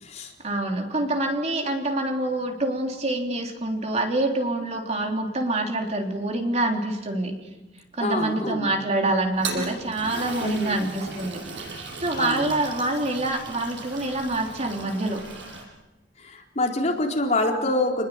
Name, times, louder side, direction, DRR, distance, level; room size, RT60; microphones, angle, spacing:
voice 1, 0.4-7.3 7.9-11.7 12.0-15.2, right 2 dB, 40° right, 3 dB, 3.5 m, -26 dB
voice 2, 8.0-8.7 10.4-10.9 12.2-12.5 16.2-18.1, left 2 dB, 40° left, 1 dB, 4.3 m, -26 dB
Toilet flush, 9.2-15.6, right 3 dB, 75° right, 7.1 m, -37 dB
28.5 x 21.0 x 9.4 m, 1.1 s
head